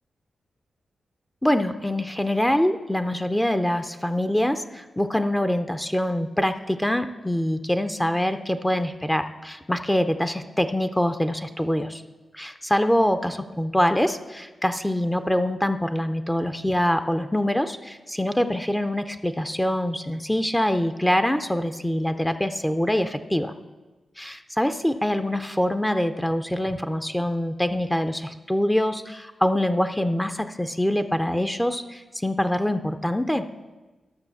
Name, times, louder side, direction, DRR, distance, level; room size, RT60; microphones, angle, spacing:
voice 1, 1.4-12.0 12.3-23.5 24.2-33.5, left 1 dB, 5° left, 9 dB, 0.5 m, -24 dB
12.5 x 6.2 x 6.9 m, 1.2 s
wide cardioid pair, 110°, 0 cm